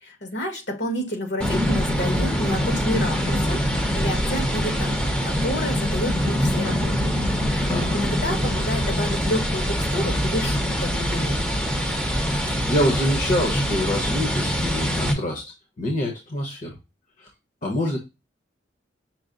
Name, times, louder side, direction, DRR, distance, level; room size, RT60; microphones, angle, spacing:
voice 1, 0.0-7.1 7.4-11.4, equal, 60° left, 3 dB, 1.3 m, -30 dB
sound 1, 1.4-15.1, equal, 5° left, 0.7 m, -24 dB
voice 2, 7.7-8.0 12.5-16.8 17.2-17.3 17.6-18.0, left 1 dB, 45° left, -1 dB, 1.0 m, -26 dB
6.0 x 2.1 x 3.8 m, 0.25 s
head